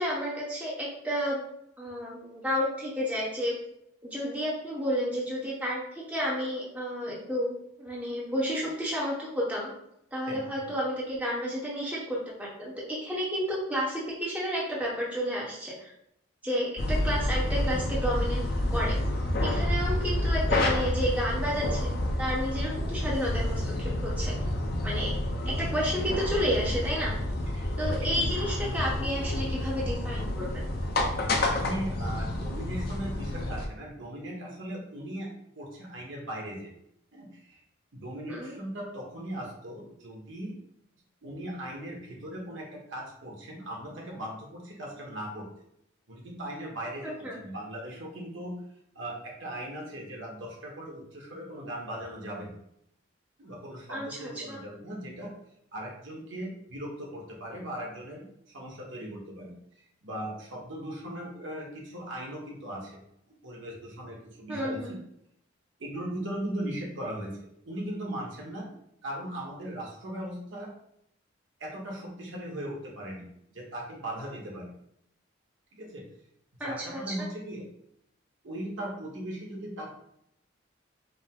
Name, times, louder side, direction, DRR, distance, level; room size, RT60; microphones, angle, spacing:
voice 1, 0.0-1.4 1.8-3.5 4.0-7.5 7.8-9.7 10.1-15.9 16.4-18.9 19.4-24.3 24.8-25.1 25.4-27.1 27.8-30.7 38.3-38.5 47.0-47.4 53.9-54.6 64.5-64.9 76.6-77.3, equal, 5° right, -6 dB, 0.9 m, -31 dB
sound 1, 16.8-33.7, left 1 dB, 50° left, 0.5 m, -29 dB
voice 2, 27.5-27.9 31.0-36.7 37.1-37.6 37.9-40.6 41.2-45.5 46.1-48.6 48.9-52.5 53.4-55.3 55.7-63.0 63.4-65.0 65.8-68.7 69.0-70.7 71.6-73.2 73.5-74.7 75.7-76.0 76.6-77.7 78.4-80.0, right 1 dB, 70° right, -2 dB, 1.1 m, -38 dB
5.1 x 2.0 x 3.7 m, 0.76 s
head